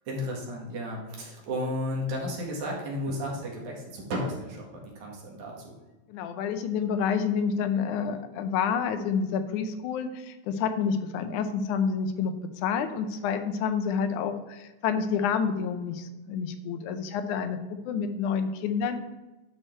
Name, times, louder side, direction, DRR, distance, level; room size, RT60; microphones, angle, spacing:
voice 1, 0.1-5.7, left 1 dB, 70° right, -2 dB, 3.2 m, -33 dB
voice 2, 6.1-12.3 12.6-19.0, left 6 dB, 80° left, 9 dB, 2.1 m, -28 dB
11.0 x 4.5 x 4.4 m, 1.1 s
omnidirectional pair, 3.5 m